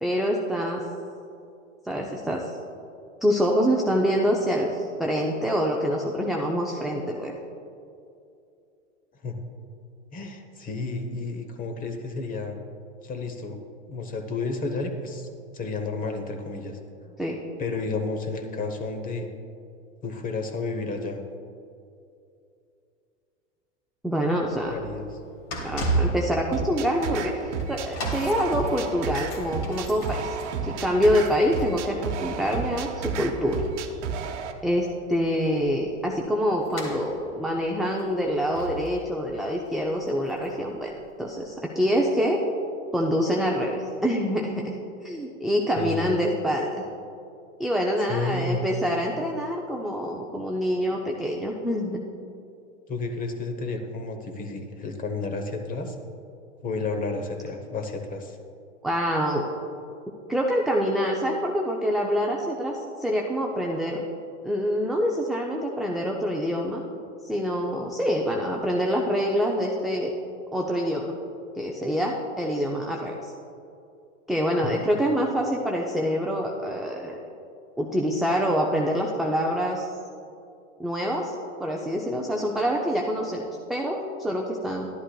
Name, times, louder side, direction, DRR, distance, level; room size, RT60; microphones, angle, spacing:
voice 1, 0.0-0.8 1.8-2.5 3.2-7.3 17.2-17.4 24.0-24.7 25.6-27.3 27.7-30.3 30.6-33.6 34.6-40.9 41.2-42.4 42.9-46.8 47.6-52.1 58.8-59.5 60.3-64.0 64.4-66.8 67.2-70.1 70.5-71.2 71.6-73.3 74.3-77.2 77.8-79.9 80.8-81.3 81.6-84.9, equal, ahead, -1 dB, 0.4 m, -26 dB
voice 2, 10.1-12.6 13.0-13.6 13.9-15.3 15.5-17.2 17.6-19.3 20.0-21.2 24.7-25.2 45.8-46.1 48.0-48.6 52.9-55.9 56.6-58.4 74.6-74.7, left 3 dB, 20° left, 6 dB, 1.0 m, -31 dB
sound 1, 24.4-41.4 42.0-42.1, right 2 dB, 50° left, 2.1 m, -36 dB
sound 2, 26.5-34.5, right 6 dB, 65° right, 1.0 m, -32 dB
11.5 x 11.0 x 2.3 m, 2.5 s
hypercardioid pair, 110°, 37 cm